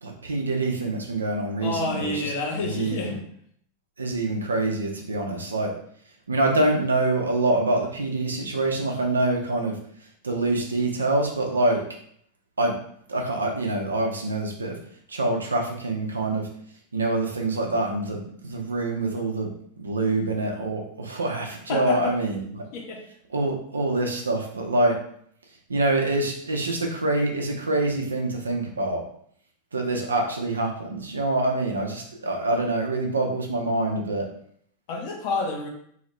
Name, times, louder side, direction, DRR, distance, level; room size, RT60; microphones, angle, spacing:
voice 1, 0.0-2.3 2.6-3.2 4.0-5.7 6.3-9.8 10.2-11.8 12.6-12.8 13.1-14.8 15.1-16.5 16.9-19.5 19.8-22.6 23.3-25.0 25.7-29.0 29.7-34.3, right 2 dB, 75° right, 2 dB, 0.6 m, -25 dB
voice 2, 1.6-3.2 21.7-22.1 22.7-23.0 34.9-35.7, left 3 dB, 45° left, 1 dB, 0.7 m, -29 dB
2.7 x 2.6 x 3.2 m, 0.64 s
figure-of-eight pair, 90°, 0 cm